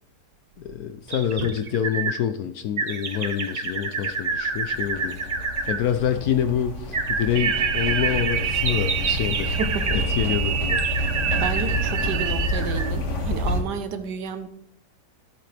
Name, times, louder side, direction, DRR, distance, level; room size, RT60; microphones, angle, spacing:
voice 1, 0.6-5.2 5.7-9.6 10.1-10.8, left 9 dB, 70° left, 0.9 m, -26 dB
sound 1, 1.1-2.2 2.8-5.8 6.9-10.0 10.7-12.9 13.4-13.5, right 4 dB, 45° right, 0.5 m, -29 dB
sound 2, 4.0-13.6, left 1 dB, 45° left, 1.6 m, -29 dB
sound 3, 7.3-12.5, right 10 dB, 90° right, 1.5 m, -28 dB
voice 2, 9.5-10.0 11.4-14.5, right 5 dB, 70° right, 1.4 m, -31 dB
14.0 x 7.7 x 3.3 m
omnidirectional pair, 2.0 m